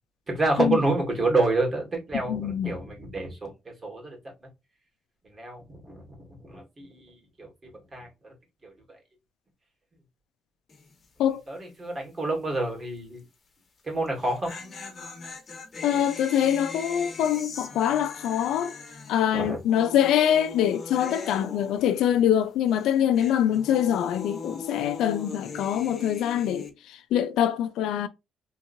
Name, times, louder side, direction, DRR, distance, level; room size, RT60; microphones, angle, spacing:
voice 1, 0.3-3.5 3.8-4.2 5.3-6.0 6.4-7.1 7.4-8.1 8.6-8.7 11.5-13.2 13.9-14.5 19.3-19.6, right 2 dB, 35° right, 1.9 m, -28 dB
voice 2, 2.1-2.8 11.2-11.4 15.8-18.7 19.1-28.1, left 10 dB, 85° left, 0.4 m, -24 dB
sound 1, 10.7-11.1 11.3-11.4 14.1-22.4 22.7-26.7, left 4 dB, 40° left, 1.1 m, -40 dB
3.6 x 2.9 x 2.6 m
cardioid pair, 90°, 0 cm